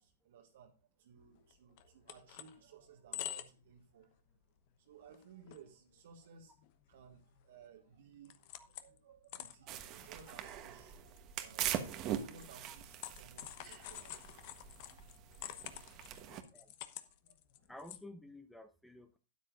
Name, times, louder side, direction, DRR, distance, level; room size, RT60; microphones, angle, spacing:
voice 1, 0.0-4.1 4.8-6.5 6.9-8.4 8.7-14.6 14.9-16.4 17.0-17.4, right 7 dB, 65° right, 1 dB, 1.4 m, -59 dB
sound 1, 1.5-1.6 1.8-2.5 2.9-3.7 4.0-4.2 4.7-4.8 5.1-5.6 5.9-6.0 6.6-7.6 7.9-9.0 9.3-18.0, left 13 dB, 50° left, 1.0 m, -48 dB
sound 2, 9.7-16.4, right 10 dB, 35° right, 1.2 m, -42 dB
voice 2, 17.7-19.2, left 1 dB, ahead, 9 dB, 0.7 m, -52 dB
12.5 x 9.7 x 2.5 m, 0.33 s
hypercardioid pair, 110°, 0 cm